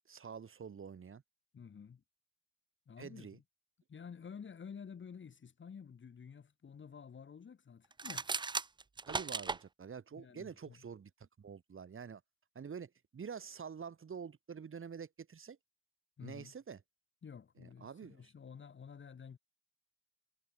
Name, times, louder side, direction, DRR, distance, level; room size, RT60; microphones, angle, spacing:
voice 1, 0.1-1.2 3.0-3.4 9.1-12.2 12.5-15.6 16.2-16.8 17.6-18.3, right 6 dB, 45° right, 5.1 m, -47 dB
voice 2, 1.5-2.0 2.9-3.4 3.9-8.3 10.1-10.8 16.2-16.5 17.2-19.4, left 6 dB, 40° left, 2.0 m, -51 dB
sound 1, 7.9-9.6, right 4 dB, 15° right, 0.5 m, -37 dB
cardioid pair, 90°, 30 cm